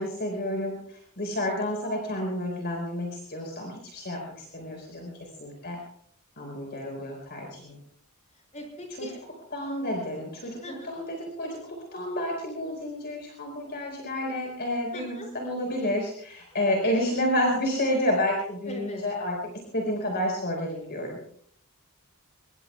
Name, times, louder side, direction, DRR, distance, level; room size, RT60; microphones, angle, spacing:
voice 1, 0.0-5.1 5.4-5.8 6.4-7.8 9.0-9.1 9.5-10.6 10.9-19.4 19.7-21.2, left 1 dB, 45° left, 0 dB, 4.8 m, -30 dB
voice 2, 8.3-9.2 10.6-10.9 14.9-15.3 16.6-17.2 18.6-19.2, left 1 dB, 30° left, 1 dB, 6.5 m, -41 dB
26.0 x 23.0 x 2.4 m, 0.64 s
head